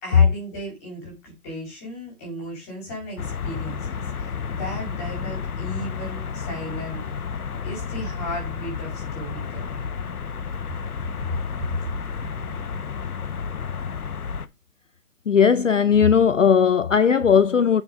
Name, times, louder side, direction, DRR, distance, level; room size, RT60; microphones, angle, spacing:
voice 1, 0.0-7.0 7.6-9.8, equal, 10° left, 2.3 m, -36 dB
sound 1, 3.2-14.5, left 6 dB, 75° left, 1.1 m, -31 dB
voice 2, 15.3-17.8, left 7 dB, 55° left, 0.6 m, -17 dB
9.6 x 4.5 x 5.0 m
hypercardioid pair, 175°, 45 cm